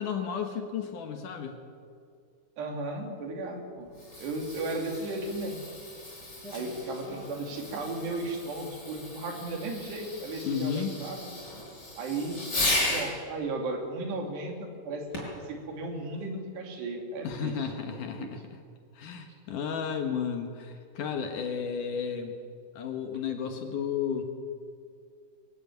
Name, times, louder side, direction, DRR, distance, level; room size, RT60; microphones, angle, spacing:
voice 1, 0.0-1.6 10.4-10.9 17.2-18.6 19.0-22.3 22.8-24.3, left 7 dB, 60° left, 5 dB, 2.6 m, -33 dB
voice 2, 2.6-3.9 4.2-5.6 6.5-11.3 12.0-12.4 12.9-15.1 15.5-18.3, right 2 dB, 85° right, 3 dB, 4.9 m, -35 dB
Fireworks, 3.8-13.1 15.1-15.5 16.2-16.3, left 1 dB, 25° left, 6.4 m, -36 dB
22.5 x 14.5 x 9.5 m, 2.3 s
omnidirectional pair, 4.7 m